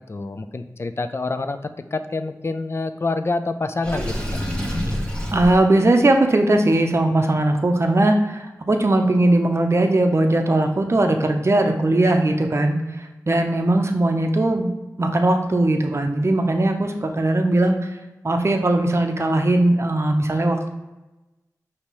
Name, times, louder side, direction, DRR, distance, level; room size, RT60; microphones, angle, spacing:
voice 1, 0.1-4.2, left 3 dB, 40° left, 9 dB, 0.4 m, -27 dB
Water / Sink (filling or washing), 3.8-5.6, equal, 15° left, 1.1 m, -26 dB
voice 2, 5.3-14.7 15.0-17.9 18.2-20.7, right 1 dB, 45° right, 4 dB, 0.6 m, -19 dB
5.2 x 2.8 x 3.1 m, 1.0 s
cardioid pair, 40°, 7 cm